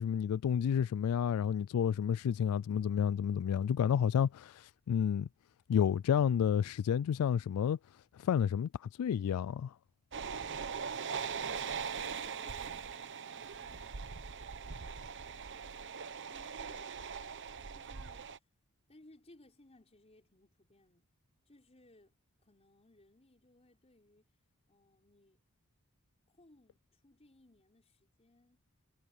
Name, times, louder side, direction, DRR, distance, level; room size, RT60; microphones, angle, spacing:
voice 1, 0.0-5.3 5.7-7.8 8.2-9.7, left 8 dB, 75° left, 0.3 m, -30 dB
sound 1, 10.1-18.4, right 6 dB, 55° right, 1.0 m, -41 dB
voice 2, 11.3-14.1 16.3-18.3 18.9-21.1 21.5-22.2 22.4-24.4 24.7-25.4 26.3-28.6, left 1 dB, 30° left, 4.4 m, -63 dB
head